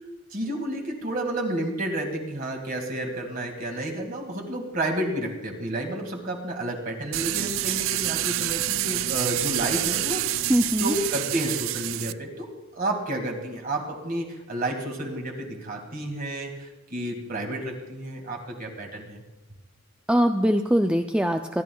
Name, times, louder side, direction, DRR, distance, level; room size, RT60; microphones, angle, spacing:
voice 1, 0.3-10.2 10.6-19.2, right 1 dB, 45° right, 2 dB, 2.0 m, -31 dB
sound 1, 7.1-12.1, right 14 dB, 85° right, 0.4 m, -27 dB
voice 2, 10.5-10.9 20.1-21.6, equal, 5° right, 5 dB, 0.4 m, -22 dB
26.5 x 11.0 x 2.3 m, 1.1 s
head